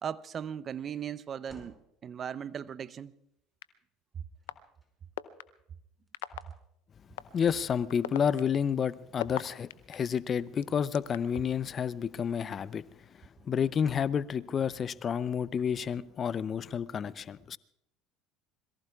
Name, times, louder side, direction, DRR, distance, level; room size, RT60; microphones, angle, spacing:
voice 1, 0.0-1.8 2.0-3.1 4.2-4.3, right 8 dB, 40° right, 0.6 m, -37 dB
sound 1, 1.4-1.9 4.4-5.1 6.1-6.5 7.4-7.9 11.4-11.9 13.8-14.3 15.0-15.1, equal, ahead, 5.4 m, -56 dB
sound 2, 3.6-3.7 4.5-4.6 5.2-5.4 6.1-6.4 7.2-7.3 7.9-9.9 10.6-11.4, left 14 dB, 80° left, 0.6 m, -36 dB
voice 2, 7.3-12.8 13.4-17.6, left 7 dB, 40° left, 0.6 m, -30 dB
26.0 x 22.0 x 2.4 m
hypercardioid pair, 70°, 0 cm